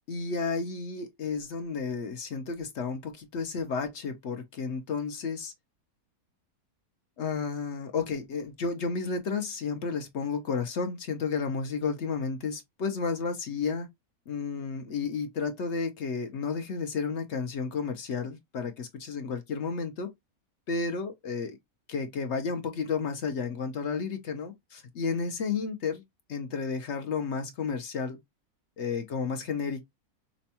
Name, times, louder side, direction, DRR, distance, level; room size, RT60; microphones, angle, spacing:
voice 1, 0.1-5.5 7.2-13.9 14.3-20.1 20.7-21.5 21.9-26.0 26.3-28.2 28.8-29.8, left 5 dB, 60° left, 0.8 m, -32 dB
5.1 x 2.2 x 2.7 m
omnidirectional pair, 1.6 m